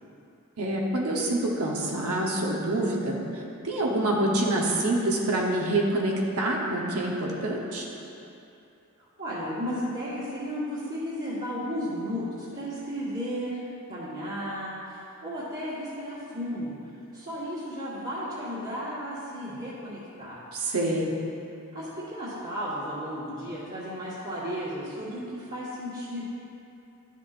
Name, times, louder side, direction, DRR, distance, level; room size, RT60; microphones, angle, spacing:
voice 1, 0.6-3.2 3.6-7.9 20.5-21.1, right 1 dB, 85° right, -2 dB, 1.0 m, -26 dB
voice 2, 9.0-13.6 13.9-16.7 17.1-20.4 21.7-26.2, equal, 45° right, -13 dB, 1.5 m, -34 dB
11.5 x 7.2 x 2.5 m, 2.7 s
head